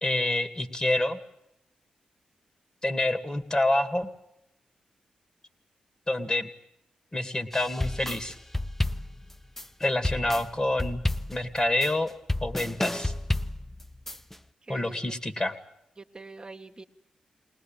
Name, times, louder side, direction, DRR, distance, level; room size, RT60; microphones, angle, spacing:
voice 1, 0.0-1.2 2.8-4.1 6.1-6.5 7.1-8.3 9.8-11.0 11.3-12.1 12.4-13.1 14.7-15.5, left 1 dB, 30° left, 8 dB, 2.4 m, -27 dB
sound 1, 7.5-14.4, left 1 dB, 10° left, 0.8 m, -31 dB
voice 2, 14.6-15.2 16.0-16.8, right 3 dB, 30° right, 4 dB, 1.6 m, -45 dB
20.5 x 19.5 x 9.1 m, 0.81 s
supercardioid pair, 40°, 3 cm